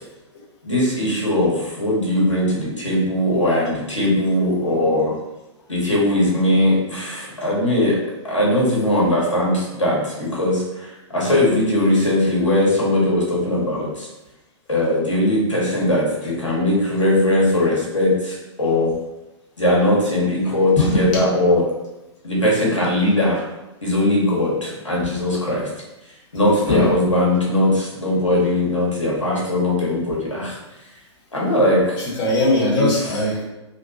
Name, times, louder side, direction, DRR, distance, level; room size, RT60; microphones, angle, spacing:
voice 1, 0.6-5.1 5.7-8.0 8.2-14.1 14.7-18.9 19.6-21.6 22.2-23.4 23.8-25.7 26.3-30.6 31.3-32.1 32.7-32.9, left 1 dB, 80° left, -5 dB, 1.1 m, -20 dB
voice 2, 32.2-33.4, left 2 dB, 35° left, -5 dB, 1.1 m, -19 dB
2.9 x 2.2 x 2.9 m, 1.0 s
figure-of-eight pair, 110°, 15 cm